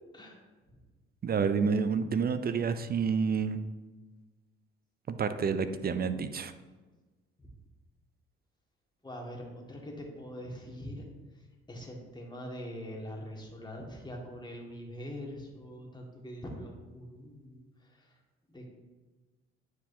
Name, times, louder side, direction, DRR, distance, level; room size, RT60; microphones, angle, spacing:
voice 1, 1.2-3.6 5.1-6.5, right 5 dB, 30° right, 11 dB, 0.5 m, -29 dB
voice 2, 9.0-11.1 11.3-18.2 18.5-18.7, equal, 15° left, -1 dB, 1.8 m, -43 dB
9.2 x 4.7 x 2.7 m, 1.2 s
hypercardioid pair, 50°, 31 cm